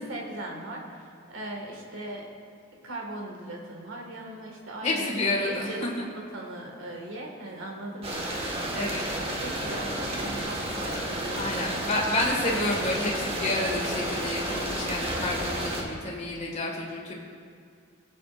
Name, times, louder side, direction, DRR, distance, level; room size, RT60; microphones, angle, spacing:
voice 1, 0.0-2.3 2.8-9.0 9.4-12.5, right 1 dB, 75° right, 0 dB, 1.9 m, -39 dB
voice 2, 4.8-5.7 8.7-9.0 11.3-17.1, left 2 dB, 35° left, -3 dB, 1.9 m, -29 dB
sound 1, 8.0-15.8, right 1 dB, 30° right, 1.4 m, -31 dB
18.5 x 8.4 x 2.5 m, 2.3 s
head